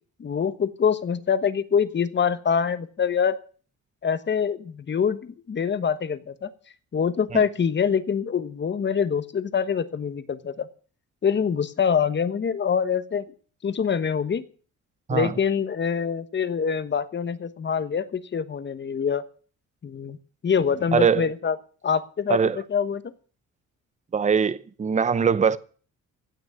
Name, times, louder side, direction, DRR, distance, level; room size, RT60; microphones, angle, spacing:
voice 1, 0.2-3.4 4.0-6.5 6.9-10.7 11.2-13.3 13.6-14.4 15.1-19.2 19.8-20.2 20.4-21.6 21.8-23.1, left 7 dB, 35° left, 1.1 m, -25 dB
voice 2, 20.9-21.3 22.3-22.6 24.1-25.6, right 6 dB, 25° right, 0.7 m, -22 dB
16.5 x 6.2 x 9.5 m
cardioid pair, 125°, 30 cm